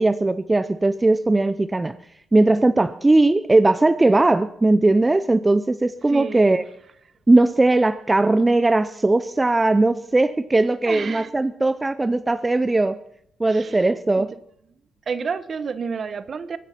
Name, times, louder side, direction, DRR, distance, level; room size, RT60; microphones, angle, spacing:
voice 1, 0.0-2.0 2.3-6.6 7.3-13.0 13.4-14.3, right 2 dB, 15° right, 0.6 m, -19 dB
voice 2, 6.1-6.6 10.9-11.3 13.5-14.3 15.1-16.6, right 5 dB, 45° right, 1.2 m, -30 dB
23.5 x 9.5 x 5.9 m
cardioid pair, 90°, 0 cm